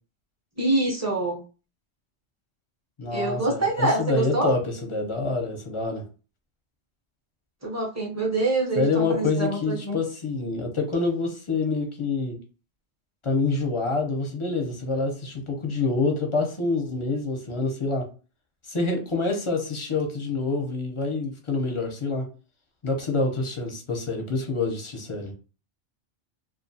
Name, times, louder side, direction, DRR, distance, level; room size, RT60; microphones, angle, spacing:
voice 1, 0.6-1.4 3.1-4.5 7.6-10.0, right 2 dB, 20° right, -2 dB, 0.6 m, -25 dB
voice 2, 3.0-6.0 8.8-12.4 13.2-18.1 18.6-22.2 22.8-25.3, left 3 dB, 40° left, 2 dB, 0.5 m, -27 dB
2.4 x 2.3 x 2.6 m, 0.34 s
omnidirectional pair, 1.2 m